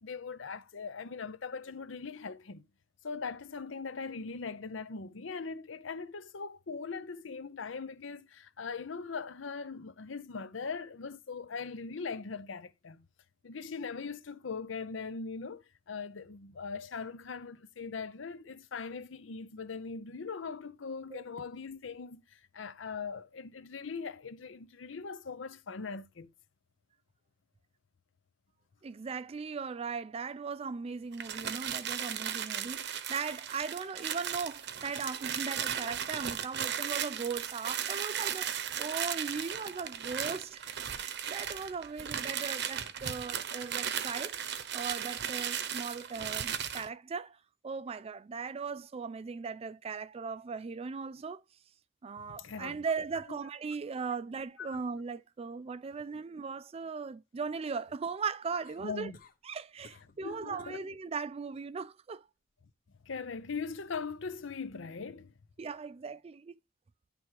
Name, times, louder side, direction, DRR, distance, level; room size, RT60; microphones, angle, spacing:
voice 1, 0.0-2.6 3.0-13.1 13.4-22.2 22.5-26.3 52.3-52.8 54.6-54.8 58.8-59.2 60.2-60.8 63.0-65.3, left 5 dB, 70° left, 0.6 m, -40 dB
voice 2, 28.8-44.4 44.7-47.4 47.6-51.4 52.0-59.1 59.4-62.3 65.6-66.6, right 5 dB, 30° right, 0.3 m, -38 dB
sound 1, 31.1-46.9, right 9 dB, 55° right, 0.7 m, -36 dB
sound 2, 58.6-59.4 59.8-60.2 60.6-60.8 61.3-61.7 63.5-63.6, left 3 dB, 45° left, 1.0 m, -58 dB
10.0 x 3.5 x 4.6 m
head